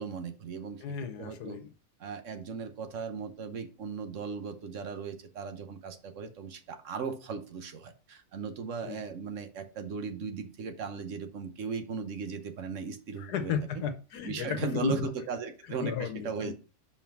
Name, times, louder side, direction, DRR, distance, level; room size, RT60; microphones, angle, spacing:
voice 1, 0.0-0.8 1.2-1.6 2.0-13.8 14.2-16.5, right 5 dB, 55° right, 1.3 m, -37 dB
voice 2, 0.8-1.7 8.8-9.0 13.2-15.1 15.8-16.5, left 7 dB, 75° left, 1.4 m, -33 dB
5.8 x 4.6 x 5.9 m
omnidirectional pair, 1.7 m